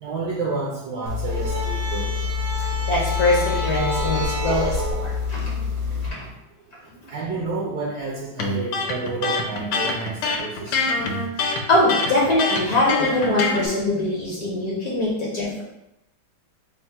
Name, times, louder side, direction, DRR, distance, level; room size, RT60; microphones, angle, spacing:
voice 1, 0.0-2.1 7.1-10.7, right 3 dB, 75° right, -2 dB, 1.0 m, -30 dB
sound 1, 1.1-6.1, left 4 dB, 90° right, 1.6 m, -26 dB
voice 2, 2.6-6.3 11.4-15.6, left 2 dB, 60° left, -5 dB, 1.0 m, -23 dB
Electric guitar, 8.4-13.7, left 3 dB, 80° left, 1.5 m, -25 dB
4.3 x 2.1 x 4.3 m, 0.86 s
omnidirectional pair, 2.4 m